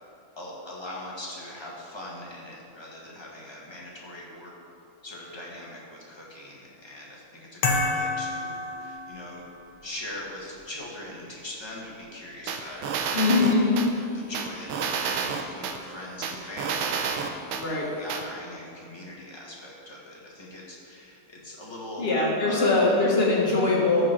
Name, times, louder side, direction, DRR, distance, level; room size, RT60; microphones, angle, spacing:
voice 1, 0.4-4.5 5.0-9.4 9.8-13.5 13.8-17.3 17.7-22.1 22.4-22.9, left 1 dB, 15° left, -4 dB, 1.2 m, -41 dB
sound 1, 7.6-9.5, left 3 dB, 85° left, 1.9 m, -28 dB
sound 2, 12.5-13.9 14.3-15.8 16.2-17.6 18.1-18.2, right 6 dB, 80° right, 1.5 m, -29 dB
voice 2, 13.1-13.7 17.6-17.9 22.0-24.1, left 3 dB, 30° left, -4 dB, 1.7 m, -22 dB
13.0 x 4.8 x 4.4 m, 2.6 s
omnidirectional pair, 2.3 m